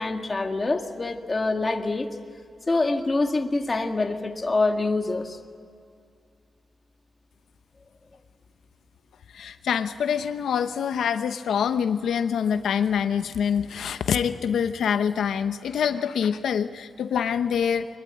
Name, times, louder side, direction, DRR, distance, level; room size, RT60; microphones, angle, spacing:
voice 1, 0.0-2.1 2.7-5.4, left 3 dB, 25° left, 4 dB, 1.7 m, -25 dB
voice 2, 9.3-17.9, left 7 dB, 90° left, 9 dB, 0.8 m, -25 dB
23.5 x 20.5 x 9.4 m, 2.4 s
wide cardioid pair, 150°, 0 cm